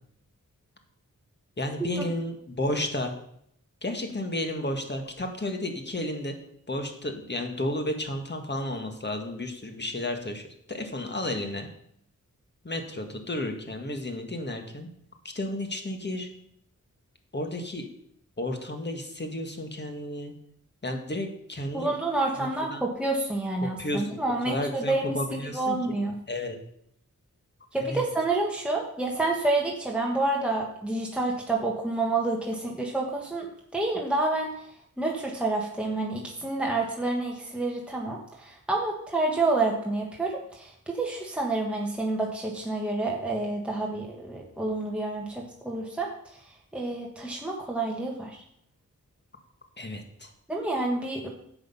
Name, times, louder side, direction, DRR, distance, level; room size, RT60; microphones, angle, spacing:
voice 1, 1.6-3.2 3.8-6.3 6.7-11.7 12.6-14.9 15.3-16.3 17.3-17.9 18.4-20.3 20.8-21.9 22.7-22.8 23.8-24.2 24.5-25.8 26.3-26.6 27.9-28.0 49.8-50.3, left 1 dB, 35° left, 5 dB, 1.7 m, -32 dB
voice 2, 21.7-26.1 27.7-34.7 35.0-48.4 50.5-51.3, right 2 dB, 5° right, -1 dB, 1.4 m, -29 dB
10.5 x 7.9 x 5.6 m, 0.71 s
wide cardioid pair, 100°, 32 cm